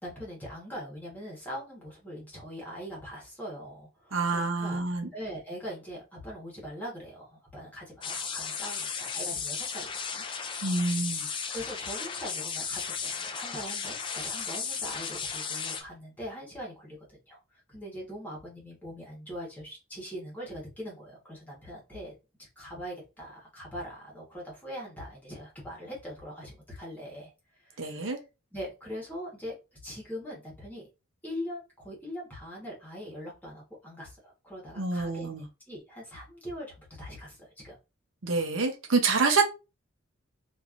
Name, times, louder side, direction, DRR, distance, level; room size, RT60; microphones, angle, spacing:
voice 1, 0.0-4.8 5.1-10.2 10.7-11.0 11.5-27.3 27.6-28.1 28.5-29.5 29.8-30.8 31.2-37.8, equal, 10° left, 1.3 m, -42 dB
voice 2, 4.1-5.1 10.6-11.3 27.8-28.2 34.8-35.4 38.2-39.4, right 4 dB, 75° right, 0.7 m, -27 dB
sound 1, 8.0-15.8, left 6 dB, 25° left, 0.3 m, -35 dB
3.1 x 2.6 x 2.5 m
head